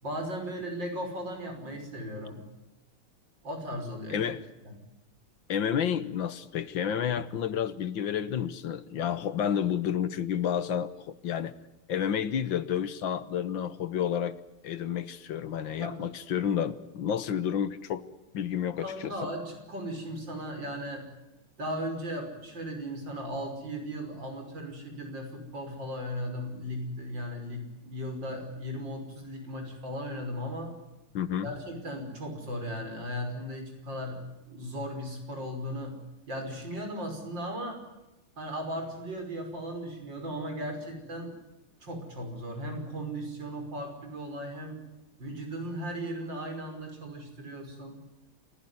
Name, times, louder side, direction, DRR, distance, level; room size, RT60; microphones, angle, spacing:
voice 1, 0.0-2.5 3.4-4.3 4.6-4.7 15.8-16.0 18.8-21.1 21.6-30.7 31.4-36.0 36.3-37.8 38.4-41.3 41.8-44.8 45.2-48.0, equal, 60° right, 4 dB, 6.2 m, -37 dB
voice 2, 5.5-11.5 11.9-14.4 14.6-18.0 18.3-19.3 31.1-31.5, left 9 dB, 65° left, 14 dB, 1.8 m, -30 dB
29.0 x 16.0 x 9.5 m, 0.97 s
omnidirectional pair, 2.3 m